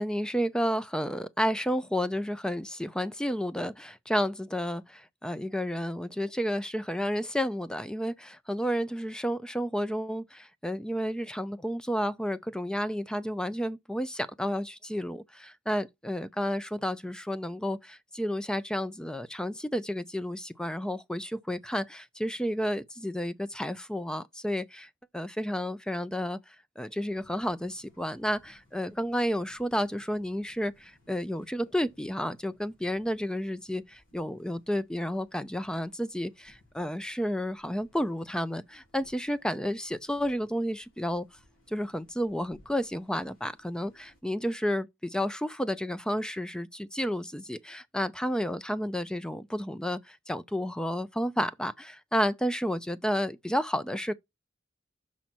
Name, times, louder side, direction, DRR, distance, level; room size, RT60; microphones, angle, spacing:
voice 1, 0.0-24.9 25.1-26.4 26.8-41.3 41.7-54.1, equal, 5° left, 0.4 m, -31 dB
sound 1, 27.1-44.2, left 1 dB, 80° left, 3.9 m, -64 dB
6.2 x 5.7 x 4.4 m
head